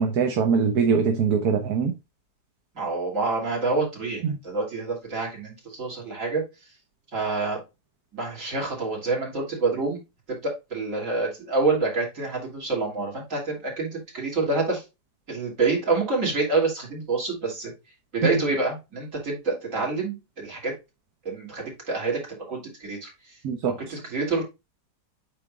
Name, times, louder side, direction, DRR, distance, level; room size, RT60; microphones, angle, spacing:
voice 1, 0.0-1.9 4.2-4.4 23.4-23.8, right 6 dB, 65° right, 1.4 m, -22 dB
voice 2, 2.8-6.4 7.1-7.6 8.1-10.0 10.3-14.8 15.3-17.7 18.1-20.7 21.3-23.1 23.6-24.4, right 3 dB, 50° right, 3.4 m, -27 dB
8.4 x 5.3 x 2.4 m
omnidirectional pair, 1.8 m